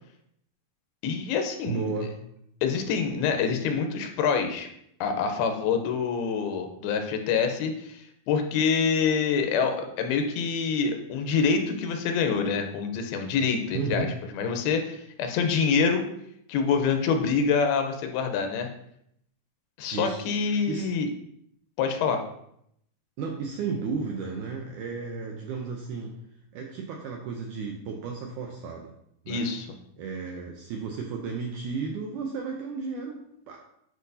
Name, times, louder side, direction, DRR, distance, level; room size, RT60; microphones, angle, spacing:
voice 1, 1.0-1.9 2.6-4.7 5.0-14.1 14.3-16.1 16.5-18.7 19.8-21.1 21.8-22.2 29.3-29.7, left 5 dB, 85° left, 5 dB, 2.8 m, -26 dB
voice 2, 1.7-2.2 13.7-14.2 19.9-20.9 23.2-26.2 26.5-28.9 29.2-29.5 30.0-33.6, right 5 dB, 80° right, 1 dB, 1.8 m, -33 dB
10.0 x 5.0 x 2.7 m, 0.73 s
omnidirectional pair, 4.3 m